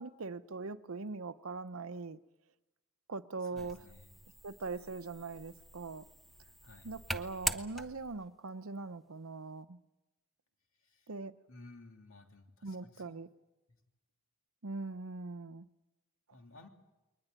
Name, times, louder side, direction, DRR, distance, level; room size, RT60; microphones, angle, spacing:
voice 1, 0.0-2.2 3.1-3.8 4.4-6.0 6.8-9.8 11.1-11.3 12.6-13.3 14.6-15.7, right 3 dB, 70° right, 0.8 m, -41 dB
voice 2, 3.4-4.2 6.6-6.9 10.8-11.1 11.5-13.1 13.7-13.8 16.3-16.7, left 2 dB, 65° left, 3.0 m, -56 dB
sound 1, 3.6-8.3, right 1 dB, ahead, 0.7 m, -42 dB
21.5 x 20.0 x 9.1 m
head